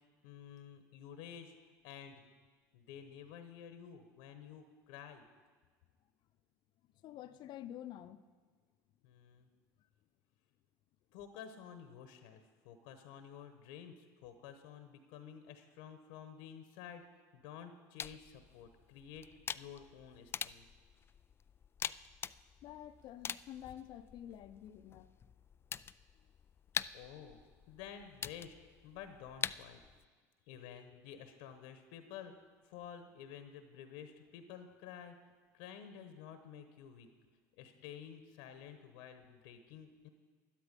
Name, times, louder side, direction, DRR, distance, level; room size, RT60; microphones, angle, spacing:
voice 1, 0.2-1.5 1.8-2.2 2.7-5.2 9.0-9.5 11.1-17.1 17.3-19.3 19.5-20.6 26.9-27.4 27.7-28.6 28.8-29.8 30.5-35.2 35.5-37.1 37.6-40.1, left 8 dB, 70° left, 8 dB, 1.1 m, -51 dB
voice 2, 7.0-8.2 22.6-25.1 30.6-30.8, left 11 dB, 55° left, 12 dB, 0.7 m, -49 dB
sound 1, 18.0-30.1, left 7 dB, 25° left, 0.3 m, -45 dB
12.0 x 12.0 x 5.3 m, 1.5 s
hypercardioid pair, 85°, 9 cm